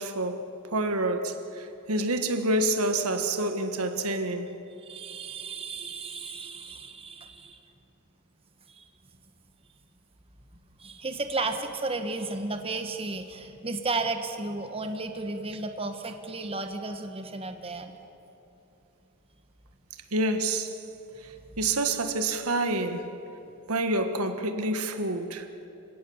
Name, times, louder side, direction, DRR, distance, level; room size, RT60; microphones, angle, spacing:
voice 1, 0.0-4.5 20.1-20.8 21.6-23.2 23.7-25.5, right 2 dB, 90° right, 1.6 m, -28 dB
voice 2, 4.8-7.6 8.7-8.8 10.8-17.9, right 3 dB, 25° right, 1.2 m, -33 dB
27.5 x 17.0 x 7.2 m
head